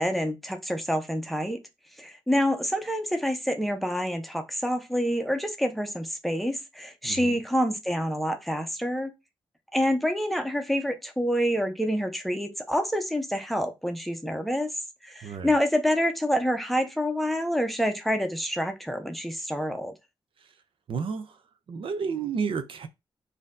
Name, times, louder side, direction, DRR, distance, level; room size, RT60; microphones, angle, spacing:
voice 1, 0.0-1.6 2.0-9.1 9.7-14.7 15.0-19.9, equal, ahead, 0.6 m, -27 dB
voice 2, 7.0-7.4 15.2-15.5 20.4-20.5 20.9-21.4 21.7-22.9, right 5 dB, 65° right, 0.6 m, -31 dB
4.2 x 2.7 x 3.7 m
wide cardioid pair, 140°, 10 cm